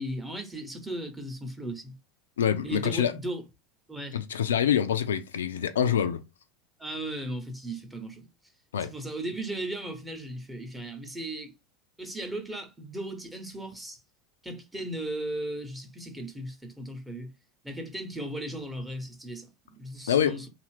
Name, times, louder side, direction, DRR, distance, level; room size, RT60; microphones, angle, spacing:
voice 1, 0.0-1.9 2.6-3.4 3.9-4.2 6.8-8.3 8.8-11.5 12.0-14.0 14.4-17.3 17.6-20.4, right 1 dB, 5° right, 0.8 m, -36 dB
voice 2, 2.4-3.1 4.1-6.2 8.7-8.9 20.1-20.4, left 9 dB, 70° left, 0.4 m, -25 dB
2.7 x 2.4 x 3.2 m
figure-of-eight pair, 75°, 0 cm